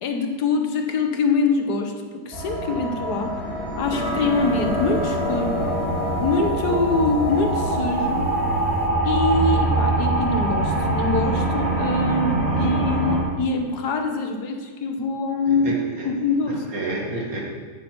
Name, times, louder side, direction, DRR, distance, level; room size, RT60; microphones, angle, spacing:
voice 1, 0.0-3.4 3.8-5.7 6.2-8.3 9.0-15.8 16.0-16.7, left 3 dB, 75° left, 5 dB, 1.5 m, -24 dB
sound 1, 2.3-7.8, equal, 25° right, 2.0 m, -31 dB
sound 2, 2.5-13.2, right 2 dB, 10° left, 3.2 m, -24 dB
sound 3, 3.8-8.9, left 2 dB, 5° right, 0.4 m, -33 dB
voice 2, 15.5-16.1 16.5-17.4, right 2 dB, 60° right, -2 dB, 2.4 m, -30 dB
9.5 x 9.2 x 4.6 m, 1.5 s
omnidirectional pair, 1.7 m